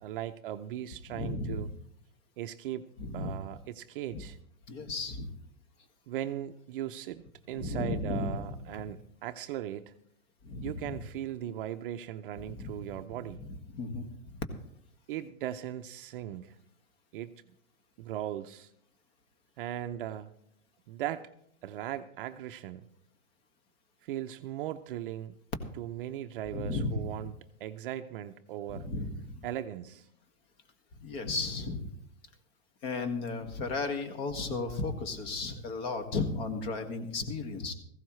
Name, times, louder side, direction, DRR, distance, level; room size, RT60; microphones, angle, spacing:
voice 1, 0.0-1.7 2.4-2.9 3.1-4.4 6.1-9.9 10.6-13.4 15.1-16.5 17.1-17.3 18.0-18.7 19.6-20.4 20.9-21.3 21.6-22.8 24.0-25.4 25.8-28.9 29.4-30.1, right 12 dB, 40° right, 9 dB, 0.5 m, -38 dB
voice 2, 1.1-1.6 3.0-3.3 4.1-4.2 4.7-5.3 7.5-8.4 8.7-8.8 10.4-10.8 12.5-12.7 13.7-14.4 26.5-27.1 28.7-29.4 31.0-31.9 32.8-37.7, left 3 dB, 45° left, 7 dB, 1.9 m, -34 dB
17.0 x 15.0 x 3.1 m, 0.69 s
hypercardioid pair, 140°, 42 cm